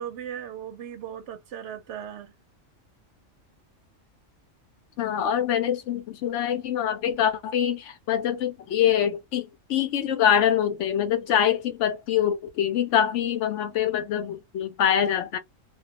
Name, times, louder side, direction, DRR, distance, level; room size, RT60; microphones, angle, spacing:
voice 1, 0.0-2.3, right 9 dB, 70° right, 0.8 m, -37 dB
voice 2, 5.0-15.4, left 9 dB, 70° left, 0.8 m, -24 dB
2.3 x 2.2 x 2.8 m
omnidirectional pair, 1.4 m